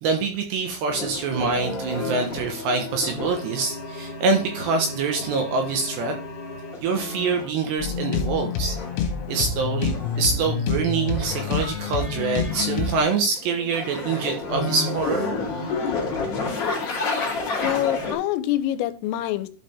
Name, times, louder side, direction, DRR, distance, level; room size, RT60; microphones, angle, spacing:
voice 1, 0.0-6.2 6.8-15.4, right 4 dB, 75° right, 4 dB, 2.8 m, -25 dB
sound 1, 0.9-7.5 8.5-10.5 11.1-13.0 13.4-18.1, left 3 dB, 45° left, 2.0 m, -31 dB
sound 2, 7.8-13.0, left 5 dB, 75° left, 3.5 m, -27 dB
voice 2, 17.6-19.5, left 13 dB, 90° left, 12 dB, 3.3 m, -25 dB
12.0 x 4.9 x 3.5 m, 0.34 s
omnidirectional pair, 5.9 m